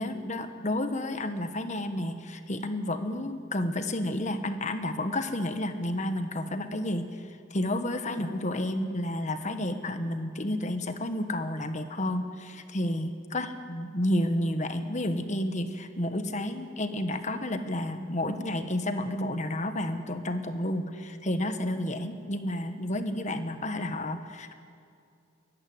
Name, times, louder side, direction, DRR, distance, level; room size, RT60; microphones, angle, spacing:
voice 1, 0.0-7.0 7.5-24.5, left 1 dB, 40° left, 8 dB, 1.4 m, -31 dB
23.0 x 13.5 x 9.7 m, 2.4 s
head